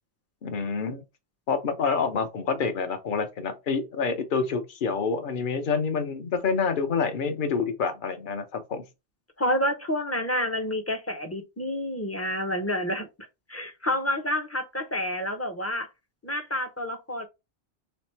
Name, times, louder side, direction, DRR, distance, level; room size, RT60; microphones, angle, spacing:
voice 1, 0.4-1.0 1.5-8.8, left 5 dB, 50° left, 0.9 m, -27 dB
voice 2, 9.4-13.1 13.5-15.9 16.2-17.3, left 1 dB, 15° left, 0.6 m, -29 dB
3.5 x 3.3 x 4.3 m
omnidirectional pair, 1.2 m